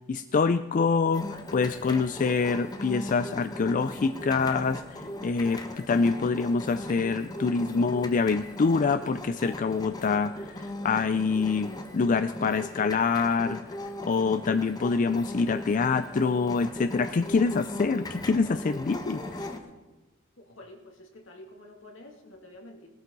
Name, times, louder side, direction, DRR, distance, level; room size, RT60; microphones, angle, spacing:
voice 1, 0.1-13.7 14.0-19.6, left 4 dB, 40° left, 12 dB, 0.4 m, -26 dB
sound 1, 1.1-19.6, left 1 dB, 20° left, 1.2 m, -38 dB
voice 2, 20.5-22.9, left 1 dB, 70° left, 2 dB, 2.5 m, -48 dB
19.0 x 12.5 x 4.0 m, 1.2 s
head